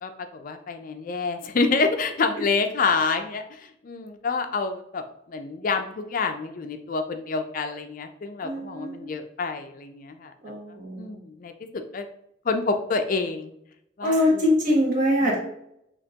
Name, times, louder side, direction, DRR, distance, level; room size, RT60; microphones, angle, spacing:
voice 1, 0.0-10.5 11.0-12.1 12.4-13.5 14.0-14.4, left 4 dB, 45° left, 7 dB, 0.4 m, -28 dB
voice 2, 8.4-9.1 10.4-11.2 14.0-15.4, left 1 dB, 45° right, -3 dB, 1.6 m, -23 dB
6.4 x 2.9 x 2.8 m, 0.76 s
head